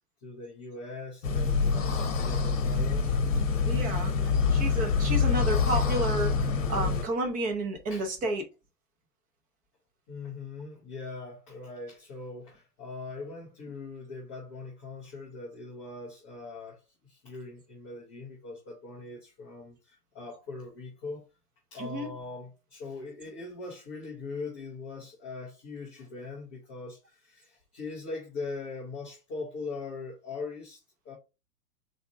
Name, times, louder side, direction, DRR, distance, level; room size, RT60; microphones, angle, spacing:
voice 1, 0.2-3.1 7.9-8.1 10.1-21.3 21.7-31.1, left 3 dB, 10° left, 0.4 m, -41 dB
sound 1, 1.2-7.0, left 5 dB, 55° left, 0.9 m, -26 dB
voice 2, 3.6-6.3 6.7-8.4 21.8-22.1, right 2 dB, 15° right, 0.9 m, -31 dB
4.1 x 3.5 x 3.5 m
figure-of-eight pair, 110°, 47 cm